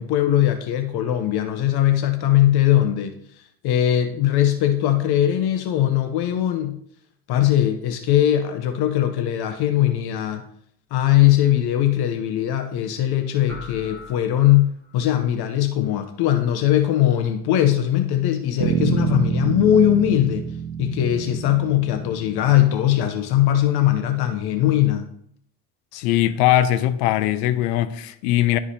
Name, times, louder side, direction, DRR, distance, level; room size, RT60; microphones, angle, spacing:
voice 1, 0.0-6.8 7.3-10.4 10.9-25.1, left 12 dB, 60° left, 0.8 m, -20 dB
sound 1, 13.5-15.1, left 4 dB, 5° left, 2.6 m, -41 dB
Bass guitar, 18.6-23.0, right 8 dB, 60° right, 1.1 m, -27 dB
voice 2, 25.9-28.6, left 13 dB, 85° left, 0.7 m, -20 dB
11.0 x 4.8 x 2.8 m
supercardioid pair, 105°, 44 cm